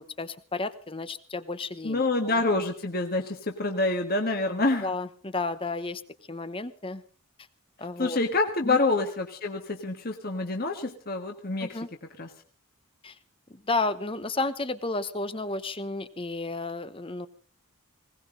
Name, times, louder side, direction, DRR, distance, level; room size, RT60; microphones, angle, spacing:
voice 1, 0.0-2.4 4.4-6.0 6.3-7.0 7.8-8.2 8.6-8.8 11.6-11.9 13.0-13.2 13.5-17.3, left 3 dB, 25° left, 12 dB, 0.9 m, -32 dB
voice 2, 1.8-4.9 8.0-11.8 12.2-12.3, left 2 dB, 40° left, 4 dB, 1.6 m, -27 dB
20.5 x 18.0 x 3.9 m, 0.40 s
head